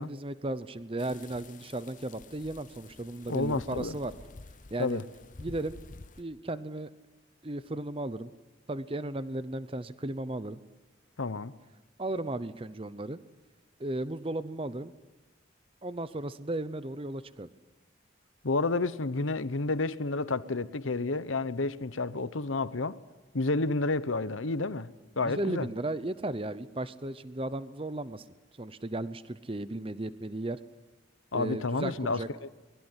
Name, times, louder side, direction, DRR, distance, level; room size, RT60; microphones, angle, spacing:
voice 1, 0.0-4.1 4.7-5.0 5.4-5.8 6.2-6.9 7.4-8.3 8.7-10.6 12.0-13.2 13.8-14.9 15.8-17.5 25.2-28.2 28.6-30.6 31.3-32.3, right 1 dB, 30° right, 0.8 m, -35 dB
sound 1, 1.0-6.2, left 3 dB, 40° left, 0.7 m, -50 dB
voice 2, 3.3-4.0 4.8-5.0 11.2-11.5 18.4-23.0 23.3-24.9 25.2-25.7 31.3-32.2, left 3 dB, 90° left, 1.0 m, -30 dB
24.5 x 21.5 x 9.8 m
head